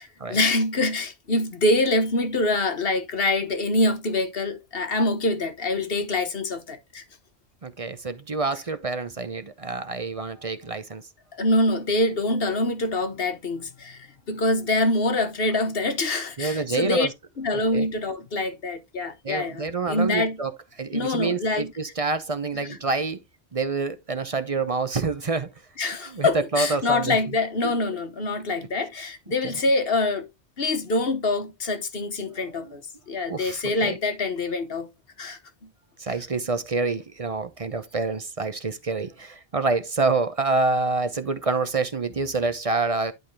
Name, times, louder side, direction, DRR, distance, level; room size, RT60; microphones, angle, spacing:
voice 1, 0.0-7.0 11.3-17.1 17.4-20.4 20.9-21.7 22.5-22.8 25.8-30.3 30.6-34.9 35.2-35.4, left 2 dB, 60° left, 1.3 m, -25 dB
voice 2, 7.6-11.0 16.4-17.1 17.7-17.9 19.2-20.5 20.8-23.2 23.5-25.5 26.1-27.2 29.4-29.5 32.3-32.7 33.3-34.0 36.0-43.1, right 3 dB, 35° right, 0.8 m, -27 dB
11.0 x 4.0 x 3.2 m
omnidirectional pair, 1.2 m